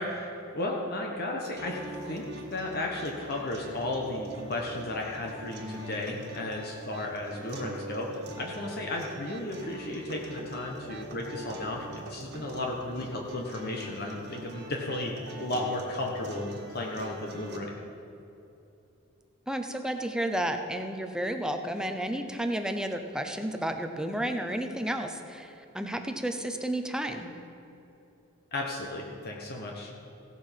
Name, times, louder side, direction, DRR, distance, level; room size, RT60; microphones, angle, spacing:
voice 1, 0.0-1.8 2.1-15.1 15.4-17.7 28.5-29.9, left 2 dB, 45° left, 0 dB, 1.2 m, -34 dB
sound 1, 1.6-17.6, right 1 dB, 50° right, 1.7 m, -42 dB
voice 2, 19.5-27.3, right 1 dB, 5° right, 6 dB, 0.7 m, -32 dB
16.0 x 7.6 x 5.8 m, 2.9 s
head